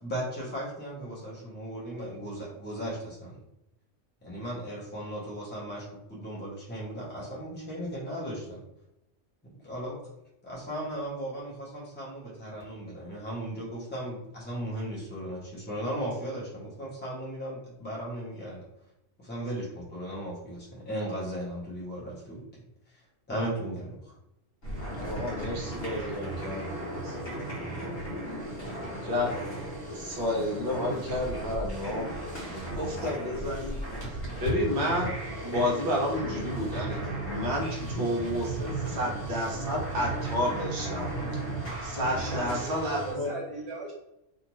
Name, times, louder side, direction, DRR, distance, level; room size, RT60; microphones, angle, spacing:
voice 1, 0.0-3.3 4.2-8.6 9.6-10.0 10.4-18.6 19.2-22.6 22.9-23.0 23.3-24.1, right 1 dB, 10° left, -7 dB, 0.8 m, -36 dB
sound 1, 24.6-43.1, right 2 dB, 55° left, 1.3 m, -35 dB
voice 2, 25.0-27.1 29.0-29.4 29.9-32.1 32.5-33.8 34.4-35.1 35.4-37.0 37.2-41.1 41.8-43.3, left 1 dB, 25° right, -3 dB, 0.5 m, -31 dB
voice 3, 42.2-43.9, right 2 dB, 60° right, -3 dB, 0.8 m, -39 dB
2.6 x 2.4 x 3.0 m, 0.86 s
omnidirectional pair, 1.3 m